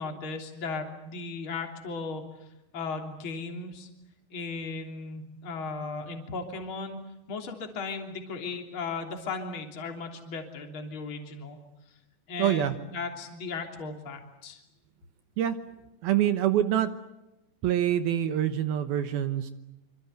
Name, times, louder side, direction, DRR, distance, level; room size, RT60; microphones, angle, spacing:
voice 1, 0.0-2.2 2.7-3.9 4.3-7.0 7.3-11.6 12.3-14.6, left 4 dB, 30° left, 3 dB, 3.5 m, -36 dB
voice 2, 12.4-12.8 15.4-15.6 16.0-16.9 17.6-19.5, right 11 dB, 70° right, 9 dB, 2.6 m, -25 dB
26.5 x 26.0 x 8.0 m, 0.91 s
omnidirectional pair, 5.1 m